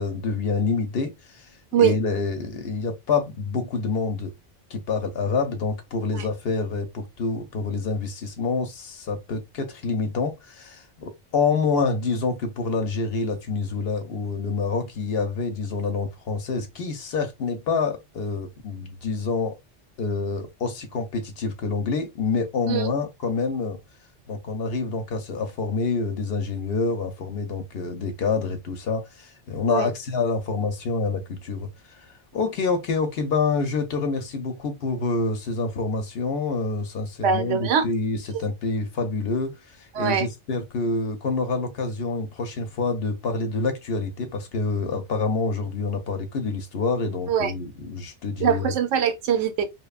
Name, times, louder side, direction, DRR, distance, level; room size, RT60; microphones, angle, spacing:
voice 1, 0.0-1.5 1.8-4.3 4.7-19.5 20.0-23.8 24.3-48.7, left 4 dB, 65° left, 0.8 m, -27 dB
voice 2, 37.2-37.9 38.3-38.4 39.9-40.3 47.3-47.5 48.4-49.6, right 8 dB, 85° right, 0.9 m, -22 dB
2.9 x 2.2 x 2.3 m
omnidirectional pair, 1.2 m